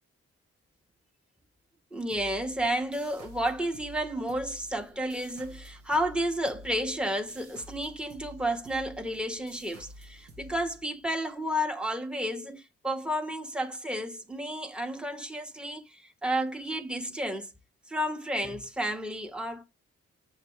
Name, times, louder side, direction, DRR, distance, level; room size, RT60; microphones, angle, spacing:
voice 1, 1.9-17.5 17.9-19.6, equal, 5° right, 1.1 m, -31 dB
sound 1, 2.1-11.3, equal, 85° right, 1.2 m, -50 dB
6.6 x 3.1 x 4.6 m
supercardioid pair, 40°, 31 cm